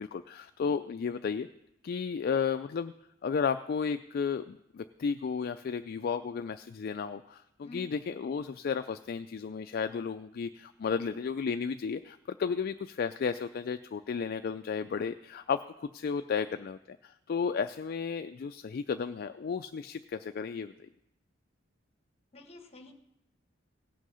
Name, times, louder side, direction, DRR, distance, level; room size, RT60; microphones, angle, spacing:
voice 1, 0.0-1.5 1.8-2.9 3.2-20.7, left 6 dB, 50° left, 9 dB, 0.3 m, -33 dB
voice 2, 22.3-22.9, left 2 dB, 30° left, 5 dB, 1.3 m, -48 dB
17.5 x 6.3 x 5.5 m, 0.83 s
head